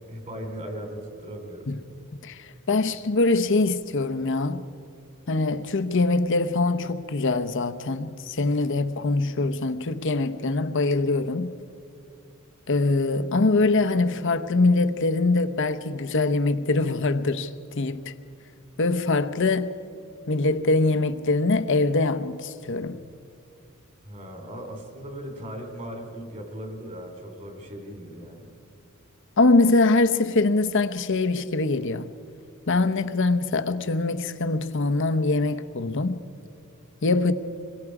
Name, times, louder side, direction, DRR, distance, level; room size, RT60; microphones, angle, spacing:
voice 1, 0.1-1.7 24.0-28.5, equal, 35° right, 3.8 m, -38 dB
voice 2, 2.2-4.6 5.3-11.5 12.7-17.5 17.8-18.1 18.8-19.7 20.3-23.0 29.4-32.1 32.7-36.2 37.0-37.3, left 3 dB, 60° left, 0.9 m, -23 dB
26.5 x 22.0 x 4.9 m
head